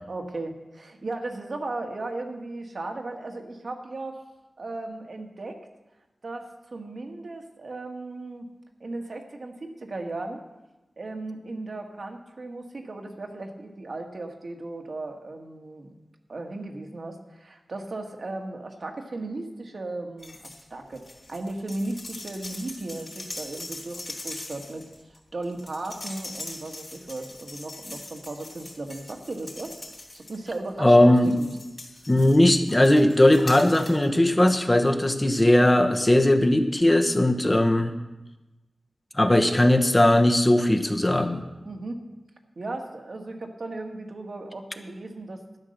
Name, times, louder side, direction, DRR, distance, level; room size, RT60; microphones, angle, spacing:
voice 1, 0.1-4.2 4.6-5.6 6.2-8.5 8.8-10.4 11.0-15.9 16.3-29.8 30.1-31.5 41.6-42.0 42.6-45.4, right 2 dB, 65° right, 3 dB, 1.6 m, -36 dB
sound 1, 20.2-20.6 20.9-30.7 31.2-34.1 34.4-34.5, left 2 dB, 40° left, 3.2 m, -41 dB
voice 2, 30.8-31.4 32.1-37.9 39.1-41.4, left 1 dB, 25° left, 6 dB, 1.2 m, -19 dB
12.0 x 9.1 x 6.6 m, 1.1 s
wide cardioid pair, 60°, 0 cm